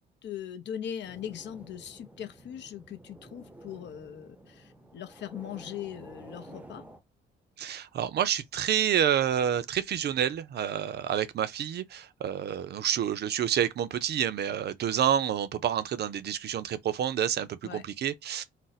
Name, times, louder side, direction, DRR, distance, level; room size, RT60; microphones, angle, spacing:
voice 1, 0.2-6.8 17.6-17.8, left 9 dB, 65° left, 0.6 m, -40 dB
sound 1, 1.0-7.0, right 1 dB, 10° right, 0.6 m, -50 dB
voice 2, 7.6-18.4, right 9 dB, 55° right, 0.5 m, -28 dB
2.5 x 2.1 x 4.0 m
cardioid pair, 90°, 20 cm